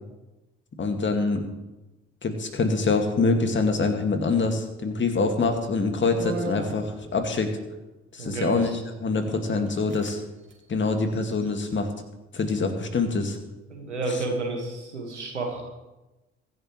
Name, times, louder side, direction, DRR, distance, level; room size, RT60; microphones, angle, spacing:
voice 1, 0.8-1.4 2.2-7.5 8.1-10.2 10.7-11.9 12.3-13.4 14.1-14.2, left 3 dB, 35° left, 5 dB, 2.1 m, -25 dB
sound 1, 6.2-7.3 8.3-8.7 9.3-9.4 9.7-10.2 10.4-10.6 11.1-11.8, right 2 dB, 35° right, 2.5 m, -36 dB
voice 2, 8.2-8.7 9.2-9.4 13.7-15.6, right 3 dB, 85° right, 2 dB, 1.9 m, -31 dB
23.5 x 10.5 x 3.2 m, 1.0 s
figure-of-eight pair, 45°, 34 cm